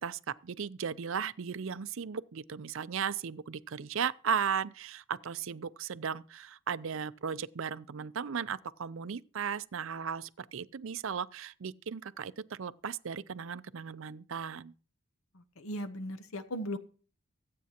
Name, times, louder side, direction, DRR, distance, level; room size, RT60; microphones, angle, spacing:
voice 1, 0.0-14.7, right 7 dB, 65° right, 0.5 m, -36 dB
voice 2, 15.3-16.8, equal, 70° left, 0.9 m, -38 dB
24.0 x 8.5 x 2.9 m
head